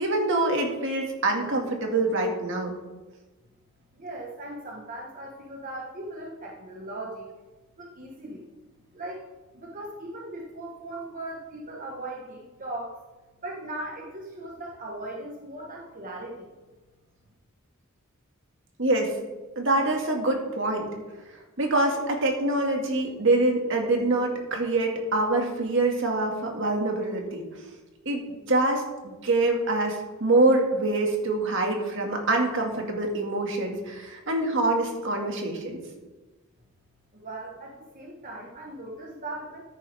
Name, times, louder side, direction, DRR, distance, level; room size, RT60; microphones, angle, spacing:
voice 1, 0.0-2.7 18.8-19.1 19.6-20.9 21.6-27.5 28.1-35.8, right 2 dB, 65° right, 2 dB, 2.2 m, -25 dB
voice 2, 3.9-7.3 7.8-8.5 8.9-9.3 9.5-12.9 13.4-16.5 37.1-39.6, right 1 dB, 40° right, -1 dB, 1.4 m, -38 dB
14.5 x 10.0 x 3.6 m, 1.2 s
head